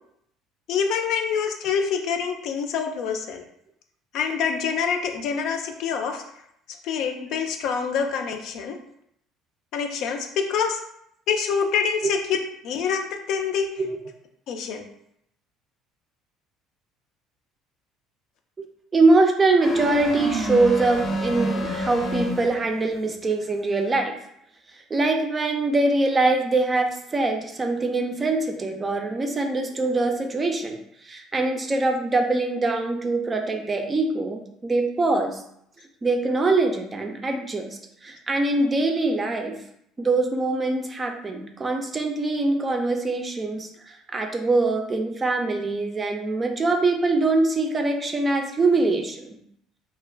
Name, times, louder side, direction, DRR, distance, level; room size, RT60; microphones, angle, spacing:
voice 1, 0.7-3.4 4.1-6.2 6.8-8.8 9.7-10.8 11.3-12.4 12.6-13.7 14.5-14.9, left 6 dB, 65° left, 4 dB, 0.4 m, -26 dB
voice 2, 18.9-24.1 24.9-30.8 31.0-35.4 36.0-37.7 38.0-39.6 40.0-49.4, right 2 dB, 25° right, 4 dB, 0.4 m, -23 dB
sound 1, 19.6-22.7, equal, 30° left, 0.6 m, -27 dB
2.3 x 2.1 x 3.2 m, 0.73 s
supercardioid pair, 90°, 0 cm